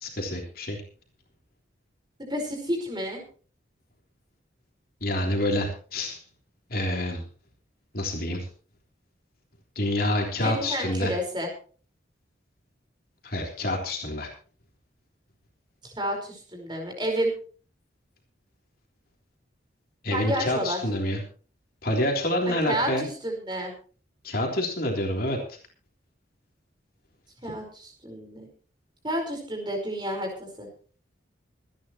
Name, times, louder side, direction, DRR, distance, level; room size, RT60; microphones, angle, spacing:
voice 1, 0.0-0.8 5.0-6.2 6.7-7.2 7.9-8.5 9.8-11.2 13.2-14.3 20.0-21.2 21.8-23.1 24.2-25.6 27.5-27.6, left 1 dB, 50° left, 1 dB, 3.5 m, -27 dB
voice 2, 2.3-3.2 10.4-11.5 15.8-17.3 20.1-20.8 22.5-23.7 27.4-28.5 29.0-30.7, equal, 25° right, 2 dB, 4.8 m, -30 dB
25.0 x 10.5 x 3.1 m, 0.40 s
head